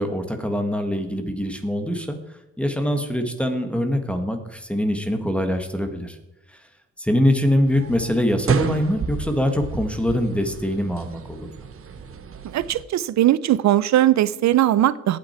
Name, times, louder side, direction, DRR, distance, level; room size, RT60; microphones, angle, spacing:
voice 1, 0.0-2.2 2.6-6.2 7.0-11.5, left 1 dB, 5° left, 6 dB, 1.5 m, -23 dB
sound 1, 7.7-12.8, right 6 dB, 45° right, 1.1 m, -31 dB
voice 2, 12.5-15.2, right 13 dB, 65° right, 18 dB, 0.6 m, -19 dB
18.5 x 6.2 x 4.4 m, 0.94 s
cardioid pair, 90°, 30 cm